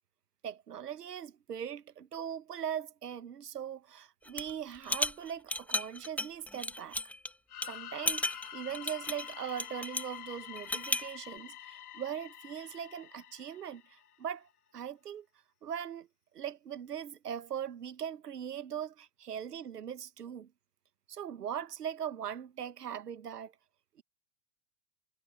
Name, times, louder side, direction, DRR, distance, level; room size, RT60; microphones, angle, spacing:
voice 1, 0.4-7.0 7.6-14.5 14.7-15.3 15.6-16.1 16.3-20.5 21.1-23.5, right 9 dB, 75° right, 1.6 m, -40 dB
sound 1, 4.3-4.5 4.8-7.3 7.6-7.7 8.1-10.1 10.6-11.1, left 1 dB, 5° left, 1.4 m, -34 dB
sound 2, 7.5-14.1, left 11 dB, 70° left, 3.0 m, -47 dB
figure-of-eight pair, 95°, 47 cm